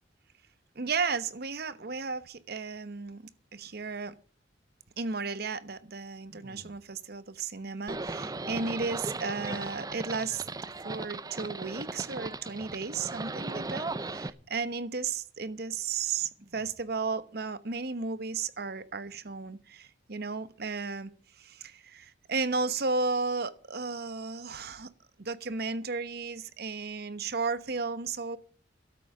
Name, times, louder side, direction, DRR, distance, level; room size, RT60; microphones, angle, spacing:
voice 1, 0.7-4.1 5.0-10.5 10.8-21.1 21.4-24.9 25.2-28.4, right 4 dB, 60° right, 14 dB, 1.1 m, -34 dB
sound 1, 6.2-7.2 8.3-9.0 10.2-11.0 12.2-13.2 14.2-14.8 16.4-17.1, equal, 45° right, 4.5 m, -57 dB
Livestock farm animals working animals, 7.9-14.3, right 3 dB, 20° right, 0.6 m, -37 dB
13.0 x 8.6 x 7.5 m, 0.43 s
head